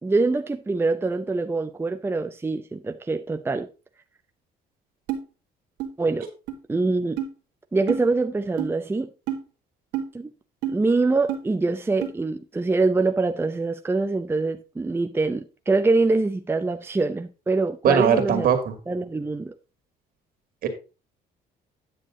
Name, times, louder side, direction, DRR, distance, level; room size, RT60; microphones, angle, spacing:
voice 1, 0.0-3.7 6.0-6.3 6.7-7.2 7.7-9.1 10.1-10.3 10.7-18.5 18.9-19.5, right 3 dB, 15° right, 0.7 m, -24 dB
sound 1, 5.1-5.2 5.8-5.9 6.5-6.6 7.2-7.3 7.9-8.0 8.6-8.7 9.3-9.4 9.9-10.1 10.6-10.8 11.3-11.4 12.0-12.1, right 10 dB, 85° right, 1.9 m, -28 dB
voice 2, 17.8-18.7 20.6-20.7, right 7 dB, 60° right, 2.4 m, -20 dB
10.0 x 6.8 x 3.8 m
cardioid pair, 110°, 17 cm